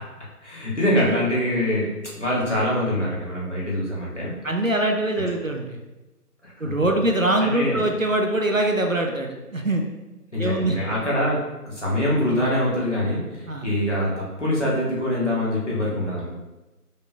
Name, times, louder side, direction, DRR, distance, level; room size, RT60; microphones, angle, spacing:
voice 1, 0.4-4.3 6.4-6.7 7.4-7.8 10.3-11.4 11.6-16.3, left 1 dB, 50° left, -6 dB, 1.4 m, -24 dB
voice 2, 4.4-5.8 6.6-9.8 10.4-10.8 13.5-13.7, right 1 dB, 60° right, 3 dB, 0.5 m, -23 dB
5.1 x 3.9 x 2.2 m, 1.1 s
figure-of-eight pair, 170°, 47 cm